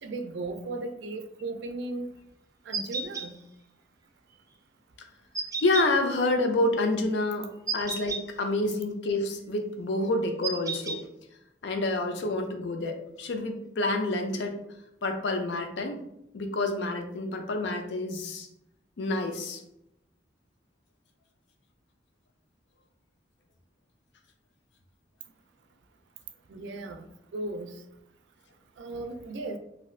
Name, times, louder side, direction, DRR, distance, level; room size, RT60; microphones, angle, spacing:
voice 1, 0.0-2.1 2.7-3.4 26.5-27.1 27.3-27.7 28.8-29.6, right 2 dB, 85° right, 7 dB, 0.4 m, -36 dB
sound 1, 2.7-3.3 5.3-5.9 7.7-8.2 10.4-11.0, right 4 dB, 20° right, 0.4 m, -31 dB
voice 2, 5.6-7.5 7.7-11.0 11.6-14.6 15.0-16.0 16.3-18.5 19.0-19.6, left 2 dB, 75° left, 4 dB, 0.5 m, -28 dB
2.6 x 2.4 x 3.1 m, 0.80 s
head